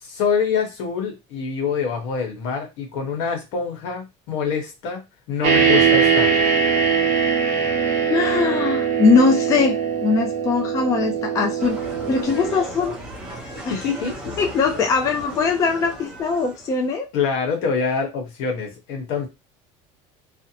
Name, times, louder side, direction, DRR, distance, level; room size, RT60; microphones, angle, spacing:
voice 1, 0.0-6.4 13.7-14.1 17.1-19.3, left 6 dB, 75° left, 2 dB, 1.1 m, -25 dB
sound 1, 5.4-12.9, right 6 dB, 55° right, 0.7 m, -21 dB
voice 2, 8.1-9.8 10.0-11.8 12.1-13.0 13.6-13.7 14.4-17.1, left 4 dB, 20° left, 2 dB, 0.4 m, -20 dB
sound 2, 11.6-17.0, right 1 dB, 5° right, 0.8 m, -36 dB
2.6 x 2.0 x 2.8 m, 0.24 s
cardioid pair, 170°, 14 cm